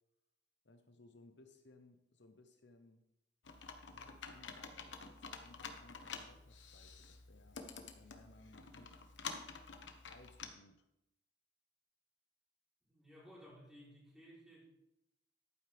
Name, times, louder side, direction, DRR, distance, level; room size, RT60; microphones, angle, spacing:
voice 1, 0.6-3.0 3.9-8.9 10.1-10.8, left 2 dB, 70° left, 7 dB, 0.8 m, -62 dB
Computer keyboard, 3.4-10.5, left 5 dB, 90° left, 1.1 m, -49 dB
voice 2, 12.8-14.6, equal, 5° right, -6 dB, 3.8 m, -57 dB
11.5 x 9.2 x 3.5 m, 0.86 s
head